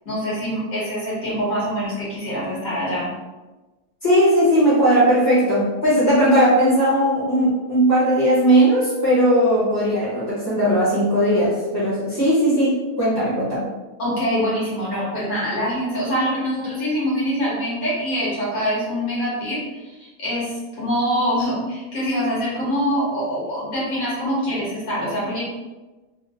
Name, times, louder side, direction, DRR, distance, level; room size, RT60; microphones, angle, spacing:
voice 1, 0.1-3.1 14.0-25.4, equal, 70° left, -7 dB, 1.7 m, -24 dB
voice 2, 4.0-13.7, equal, 20° left, -10 dB, 0.8 m, -18 dB
3.7 x 2.1 x 2.4 m, 1.2 s
omnidirectional pair, 1.5 m